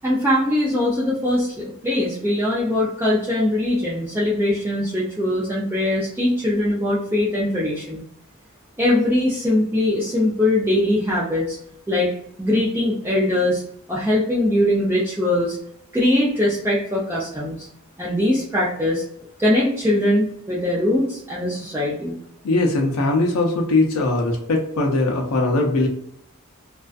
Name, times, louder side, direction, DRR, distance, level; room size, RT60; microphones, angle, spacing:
voice 1, 0.0-8.0 8.8-11.6 11.9-12.1 12.4-13.6 13.9-15.6 15.9-17.7 18.0-19.0 19.4-22.1, left 1 dB, 10° right, -6 dB, 0.4 m, -21 dB
voice 2, 22.4-25.9, left 2 dB, 85° left, 0 dB, 0.5 m, -20 dB
2.4 x 2.3 x 2.3 m, 0.72 s
head